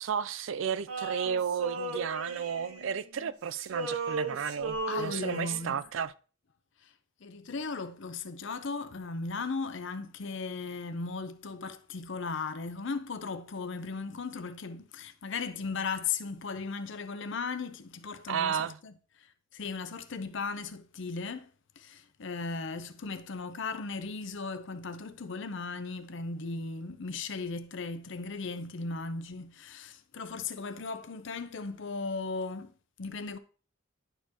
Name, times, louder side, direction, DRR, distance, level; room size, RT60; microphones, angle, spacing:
voice 1, 0.0-6.1 18.3-18.8, right 7 dB, 60° right, 0.4 m, -33 dB
Male singing, 0.9-3.3 3.6-5.8, right 3 dB, 90° right, 1.2 m, -36 dB
voice 2, 4.9-5.8 6.8-6.9 7.2-18.9 19.5-21.5 21.8-32.7 33.0-33.4, left 4 dB, 60° left, 0.6 m, -37 dB
11.0 x 4.5 x 2.9 m
head